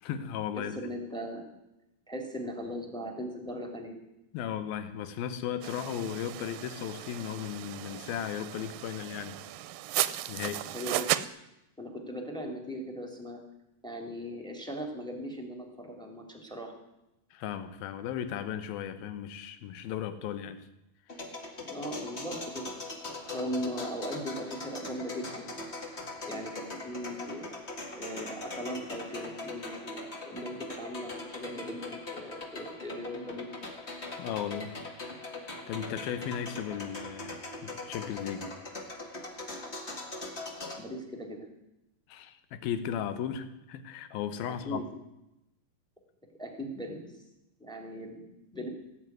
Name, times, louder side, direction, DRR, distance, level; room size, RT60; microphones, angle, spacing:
voice 1, 0.0-0.8 4.3-9.4 10.3-10.7 17.3-20.7 34.2-34.8 35.7-37.4 37.6-38.5 42.1-44.8, left 9 dB, 80° left, 11 dB, 2.9 m, -36 dB
voice 2, 0.6-1.4 2.1-3.9 10.6-11.1 11.8-13.4 13.8-16.7 21.6-22.7 23.2-25.5 26.2-27.5 27.9-33.5 40.8-41.5 44.5-44.9 46.4-47.1 47.6-48.2 48.5-48.7, equal, ahead, 4 dB, 2.1 m, -38 dB
sound 1, 5.6-11.3, right 14 dB, 80° right, 2.2 m, -35 dB
sound 2, 21.1-40.8, left 2 dB, 30° left, 1.2 m, -41 dB
17.0 x 7.9 x 9.4 m, 0.87 s
omnidirectional pair, 4.2 m